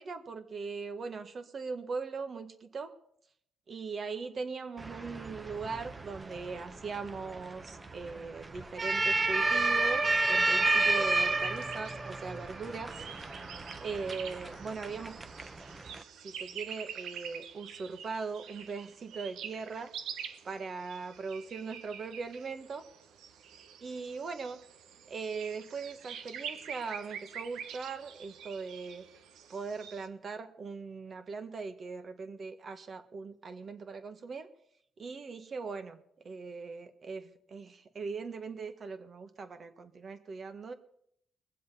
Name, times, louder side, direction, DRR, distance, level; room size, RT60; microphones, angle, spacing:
voice 1, 0.0-2.9 3.7-13.0 13.8-15.2 16.2-19.9 20.5-22.8 23.8-24.6 25.1-29.0 29.5-34.5 35.0-40.7, right 4 dB, 45° right, 8 dB, 1.6 m, -40 dB
sound 1, 4.8-16.0, right 2 dB, 25° right, 1.2 m, -31 dB
sound 2, 11.2-30.1, right 8 dB, 80° right, 1.2 m, -46 dB
21.0 x 7.6 x 5.6 m, 0.70 s
cardioid pair, 90°, 0 cm